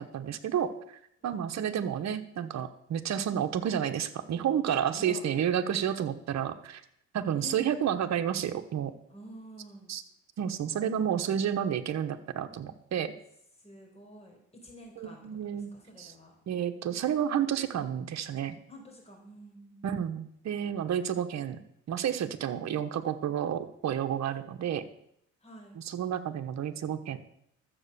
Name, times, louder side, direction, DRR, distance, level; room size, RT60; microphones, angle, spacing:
voice 1, 0.0-6.8 7.1-8.9 9.9-10.0 10.4-13.1 15.0-15.7 16.0-16.1 16.5-18.5 19.8-21.6 21.9-24.8 25.8-27.2, right 9 dB, 65° right, 8 dB, 1.2 m, -31 dB
voice 2, 1.2-1.7 4.9-5.3 7.3-7.7 9.1-10.0 13.6-15.2 15.5-16.3 18.7-20.2 25.4-25.8, equal, 20° left, 0 dB, 4.6 m, -49 dB
12.5 x 7.8 x 6.9 m, 0.73 s
cardioid pair, 90°, 30 cm